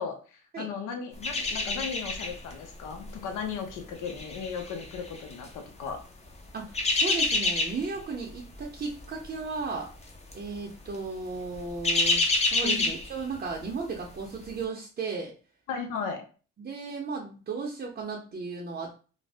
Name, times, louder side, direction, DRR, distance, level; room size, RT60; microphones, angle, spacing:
voice 1, 0.0-6.0 12.6-12.9 15.7-16.2, left 6 dB, 85° left, 4 dB, 0.7 m, -36 dB
sound 1, 1.2-2.5 2.8-3.1 3.8-5.5 6.5-8.0 8.3-8.6 8.9-9.0 10.0-10.4 10.7-10.9 11.3-13.6 14.0-14.1, left 2 dB, 20° left, 0.6 m, -28 dB
voice 2, 6.5-9.9 10.3-15.3 16.6-19.0, right 4 dB, 35° right, -2 dB, 0.6 m, -35 dB
2.5 x 2.0 x 3.4 m, 0.37 s
cardioid pair, 90°, 30 cm